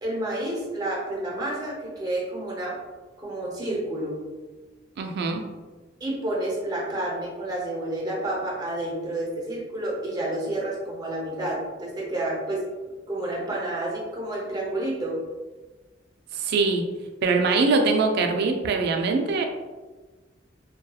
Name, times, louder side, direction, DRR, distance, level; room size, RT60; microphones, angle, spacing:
voice 1, 0.0-2.8 3.2-4.2 6.0-12.6 13.1-15.2, right 1 dB, 20° right, -4 dB, 0.6 m, -30 dB
voice 2, 5.0-5.4 16.3-16.8 17.2-19.4, right 4 dB, 60° right, 3 dB, 0.3 m, -23 dB
2.7 x 2.2 x 2.3 m, 1.3 s
head